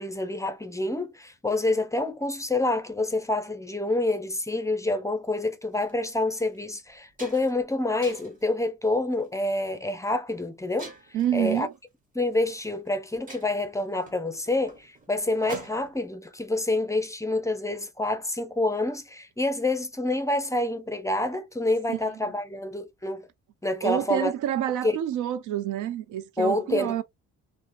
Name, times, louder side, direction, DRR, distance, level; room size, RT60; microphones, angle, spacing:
voice 1, 0.0-10.9 11.3-11.7 12.1-23.3 23.6-24.3 24.8-25.0 26.4-27.0, left 2 dB, 10° left, 0.4 m, -27 dB
sound 1, 5.7-5.9 6.5-6.6 6.9-7.6 8.0-8.5 9.1-9.4 10.8-11.3 12.4-12.5 12.9-13.0 13.3-16.0, right 2 dB, 25° right, 1.0 m, -44 dB
voice 2, 11.1-11.7 21.9-22.0 23.8-27.0, right 11 dB, 80° right, 0.5 m, -28 dB
2.8 x 2.1 x 2.4 m
cardioid pair, 90°, 30 cm